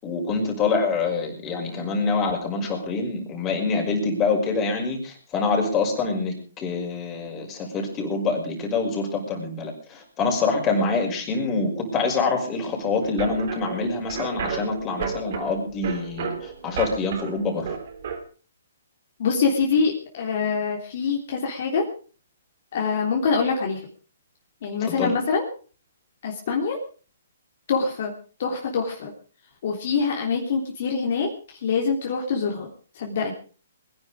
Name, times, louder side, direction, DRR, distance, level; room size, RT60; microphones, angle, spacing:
voice 1, 0.0-17.7 24.9-25.1, left 4 dB, 20° left, 1 dB, 5.7 m, -25 dB
sound 1, 13.0-18.2, right 6 dB, 55° right, 3.5 m, -33 dB
voice 2, 19.2-21.8 22.7-23.9 24.6-25.4 26.2-26.8 27.7-28.1 28.4-29.1 29.6-32.7 32.9-33.3, left 5 dB, 50° left, 1 dB, 3.2 m, -25 dB
22.0 x 10.5 x 5.0 m, 0.40 s
hypercardioid pair, 140°, 0 cm